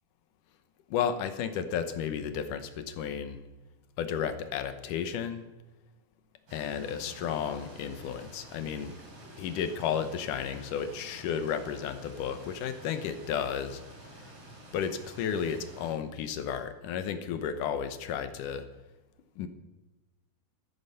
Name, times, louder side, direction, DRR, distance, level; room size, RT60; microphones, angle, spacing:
voice 1, 0.9-3.4 4.0-5.4 6.5-8.9 9.4-13.8 14.7-18.7 19.4-19.5, left 8 dB, 70° left, 10 dB, 2.1 m, -33 dB
sound 1, 6.5-15.9, right 1 dB, 40° right, 4.0 m, -50 dB
14.5 x 14.0 x 5.6 m, 1.1 s
omnidirectional pair, 4.6 m